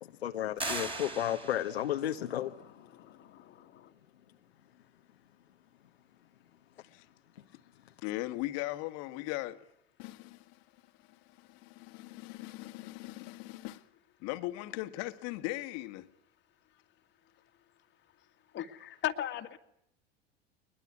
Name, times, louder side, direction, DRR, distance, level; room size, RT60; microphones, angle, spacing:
voice 1, 0.0-2.5, left 11 dB, 80° left, 1.2 m, -33 dB
sound 1, 0.6-2.0, right 2 dB, 15° right, 4.4 m, -38 dB
voice 2, 2.2-3.9 18.5-19.6, left 12 dB, 35° left, 2.0 m, -39 dB
voice 3, 8.0-9.6 10.0-10.6 11.1-13.8 14.2-16.1, left 18 dB, 50° left, 1.8 m, -39 dB
22.0 x 21.5 x 9.7 m
hypercardioid pair, 90°, 32 cm